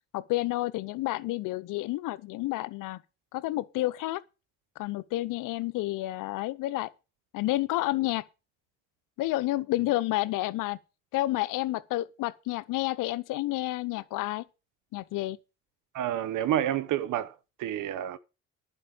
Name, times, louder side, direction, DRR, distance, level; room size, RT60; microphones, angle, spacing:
voice 1, 0.1-3.0 3.3-4.2 4.8-6.9 7.3-8.2 9.2-10.8 11.1-14.4 14.9-15.4, left 17 dB, 80° left, 0.9 m, -30 dB
voice 2, 15.9-17.3 17.6-18.2, right 11 dB, 75° right, 1.0 m, -29 dB
11.0 x 5.4 x 8.7 m
supercardioid pair, 55°, 32 cm